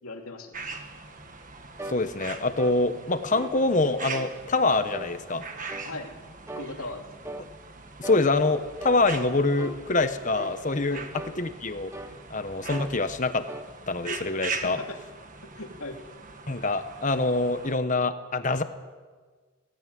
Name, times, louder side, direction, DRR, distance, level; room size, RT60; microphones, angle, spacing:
voice 1, 0.0-0.6 5.8-6.2 6.6-7.0 10.9-11.1 14.6-15.0 15.6-16.0, left 2 dB, 75° left, 3 dB, 2.8 m, -38 dB
sound 1, 0.5-17.7, right 4 dB, 35° right, 1.6 m, -41 dB
sound 2, 1.8-2.0 2.6-2.8 3.3-3.6 4.1-4.4 4.9-5.1 5.7-5.9 6.5-6.7 7.2-7.5 8.0-8.3 8.8-9.0 9.6-9.8 10.4-10.6 11.1-11.4 11.9-12.2 12.7-12.9 13.5-13.7, right 1 dB, 10° right, 0.7 m, -39 dB
voice 2, 1.9-5.4 8.0-11.0 11.4-11.9 12.3-13.4 13.9-14.8 16.5-18.6, left 3 dB, 35° left, 10 dB, 1.2 m, -25 dB
17.5 x 16.0 x 9.4 m, 1.5 s
head